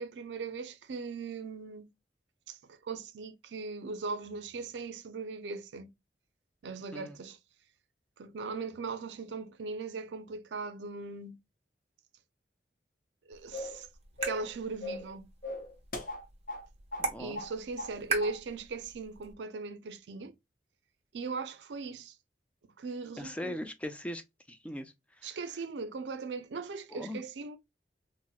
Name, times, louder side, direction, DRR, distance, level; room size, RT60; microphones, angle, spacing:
voice 1, 0.0-1.9 2.5-5.9 6.6-7.4 8.2-11.4 13.3-13.9 14.2-15.3 17.2-20.4 21.1-22.1 22.8-23.6 25.2-27.6, right 4 dB, 80° right, 0.4 m, -39 dB
sound 1, 13.3-19.3, right 4 dB, 35° right, 0.8 m, -41 dB
sound 2, 13.5-13.8 14.2-14.5 14.8-15.1 15.4-16.6 16.9-17.1 17.3-17.9 18.2-18.4, left 1 dB, 50° left, 0.7 m, -39 dB
voice 2, 17.0-17.4 23.2-24.2 24.5-25.4 26.9-27.2, left 1 dB, 5° left, 0.3 m, -40 dB
4.1 x 2.1 x 2.3 m
head